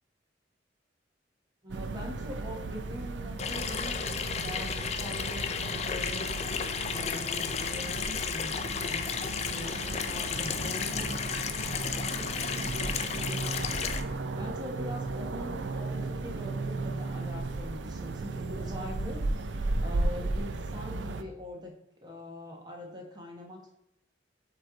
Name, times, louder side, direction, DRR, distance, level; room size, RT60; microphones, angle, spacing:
voice 1, 1.6-6.3 6.9-9.0 9.5-21.7 22.0-23.7, left 1 dB, 25° right, 0 dB, 1.3 m, -43 dB
sound 1, 1.7-21.2, right 2 dB, 80° right, 0.5 m, -35 dB
Water tap faucet / Sink (filling or washing), 3.4-14.0, left 6 dB, 35° left, 0.4 m, -33 dB
sound 2, 10.4-13.7, left 2 dB, 75° left, 0.7 m, -51 dB
7.8 x 3.2 x 3.9 m, 0.79 s
head